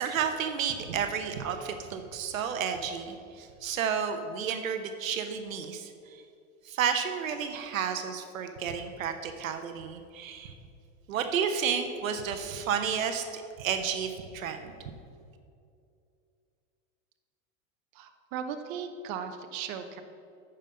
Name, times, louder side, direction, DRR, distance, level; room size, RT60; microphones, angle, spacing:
voice 1, 0.0-6.2 6.6-10.5 11.1-14.7, right 7 dB, 90° right, 7 dB, 0.9 m, -31 dB
voice 2, 17.9-20.0, right 7 dB, 50° right, 7 dB, 0.9 m, -37 dB
9.1 x 5.4 x 5.5 m, 2.5 s
hypercardioid pair, 110°, 39 cm